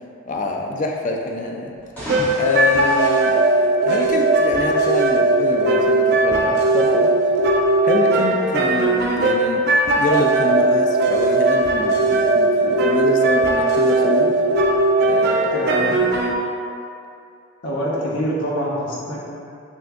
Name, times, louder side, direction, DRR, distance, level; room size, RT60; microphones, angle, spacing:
voice 1, 0.3-1.7 2.3-3.4 3.8-7.1 7.8-9.6 10.0-14.4 15.0-15.6, left 2 dB, 40° left, 1 dB, 0.3 m, -25 dB
sound 1, 1.7-4.3, equal, 10° left, 1.3 m, -33 dB
sound 2, 2.1-16.3, right 2 dB, 50° right, 0.3 m, -18 dB
voice 2, 15.5-16.1 17.6-19.2, equal, 75° left, -6 dB, 0.9 m, -25 dB
6.1 x 2.5 x 2.4 m, 2.5 s
head